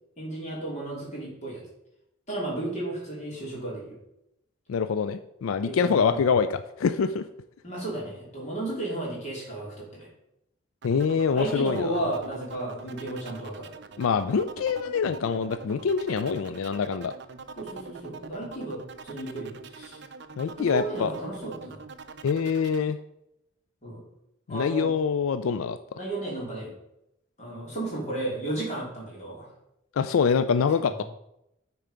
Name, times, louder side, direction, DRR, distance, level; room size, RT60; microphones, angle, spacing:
voice 1, 0.2-1.6 2.3-3.9 5.6-6.2 7.6-10.1 11.3-13.7 17.6-20.0 20.6-21.8 23.8-24.0 24.5-24.9 25.9-26.7 27.4-29.5, right 2 dB, 35° left, -4 dB, 3.2 m, -33 dB
voice 2, 4.7-7.2 10.8-12.0 14.0-17.1 20.4-21.1 22.2-23.0 24.5-25.8 30.0-31.0, left 6 dB, 90° left, 11 dB, 0.4 m, -25 dB
sound 1, 10.8-22.8, right 4 dB, 55° right, 0.6 m, -43 dB
9.1 x 4.6 x 5.1 m, 0.84 s
head